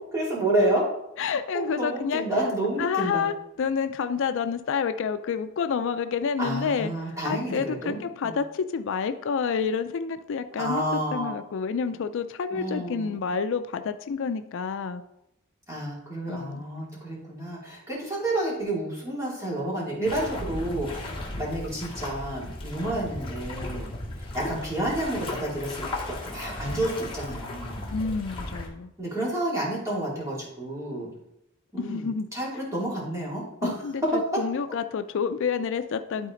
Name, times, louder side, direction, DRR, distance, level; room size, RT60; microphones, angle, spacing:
voice 1, 0.1-0.8 1.2-3.3 6.4-8.3 10.6-11.3 12.5-13.2 15.7-23.9 24.3-27.9 29.0-31.1 31.7-34.4, right 1 dB, 15° right, -5 dB, 2.7 m, -30 dB
voice 2, 1.2-2.3 2.8-10.8 11.1-15.0 16.3-16.6 27.9-28.9 31.8-32.3 33.6-36.3, left 6 dB, 60° left, 10 dB, 0.4 m, -29 dB
sound 1, 20.0-28.7, left 2 dB, 25° left, 1.7 m, -36 dB
12.0 x 4.2 x 3.8 m, 0.82 s
head